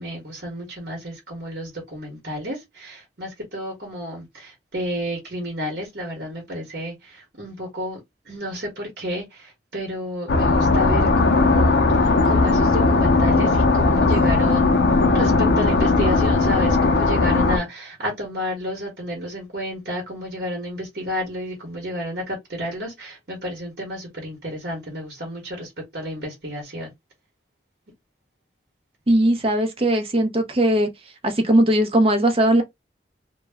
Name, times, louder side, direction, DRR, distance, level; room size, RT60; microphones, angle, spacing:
voice 1, 0.0-8.0 8.3-14.7 15.1-26.9, equal, 60° right, 1.0 m, -31 dB
sound 1, 10.3-17.6, left 3 dB, 75° left, 0.5 m, -18 dB
voice 2, 29.1-30.9 31.2-32.6, right 1 dB, 30° right, 0.6 m, -19 dB
2.2 x 2.0 x 3.3 m
head